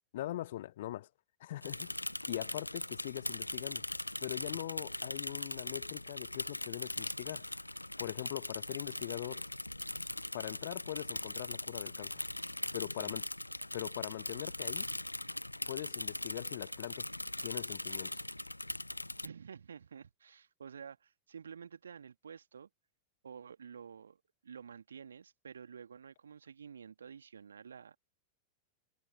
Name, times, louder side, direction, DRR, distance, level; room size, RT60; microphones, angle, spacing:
voice 1, 0.1-1.1 1.4-1.9 2.3-3.8 4.2-7.5 8.0-9.5 10.3-12.3 12.7-13.2 13.7-14.9 15.7-17.1 17.4-18.2, left 14 dB, 55° left, 0.8 m, -41 dB
Bicycle / Mechanisms, 1.6-19.3, left 1 dB, 85° left, 0.5 m, -40 dB
voice 2, 19.2-22.7 23.2-28.0, right 7 dB, 70° right, 2.2 m, -50 dB
figure-of-eight pair, 90°, 0 cm